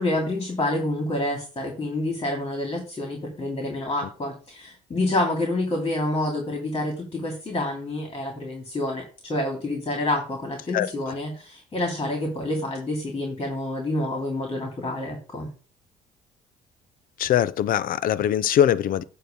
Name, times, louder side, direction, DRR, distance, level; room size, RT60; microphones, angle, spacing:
voice 1, 0.0-15.5, left 1 dB, 25° left, 2.9 m, -28 dB
voice 2, 17.2-19.0, left 10 dB, 55° left, 0.6 m, -21 dB
9.3 x 3.2 x 6.7 m
cardioid pair, 110°, 17 cm